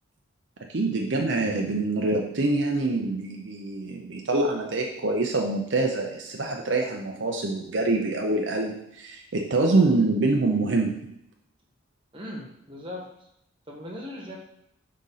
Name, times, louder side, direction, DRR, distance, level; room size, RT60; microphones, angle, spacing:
voice 1, 0.7-11.1, right 2 dB, 60° right, 1 dB, 0.6 m, -25 dB
voice 2, 12.1-13.1 13.7-14.4, left 1 dB, 25° right, -1 dB, 1.2 m, -38 dB
5.2 x 3.7 x 5.6 m, 0.77 s
head